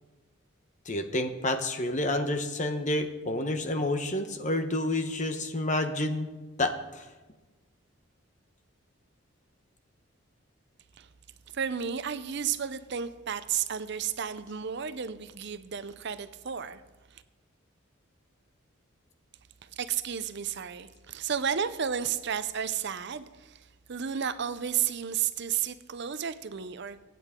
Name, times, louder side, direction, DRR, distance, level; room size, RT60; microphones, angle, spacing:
voice 1, 0.9-6.3 6.6-6.7, left 1 dB, 35° left, 8 dB, 1.0 m, -29 dB
voice 2, 11.5-16.8 17.1-17.2 19.7-27.0, right 8 dB, 55° right, 12 dB, 0.6 m, -32 dB
23.5 x 9.3 x 3.7 m, 1.2 s
head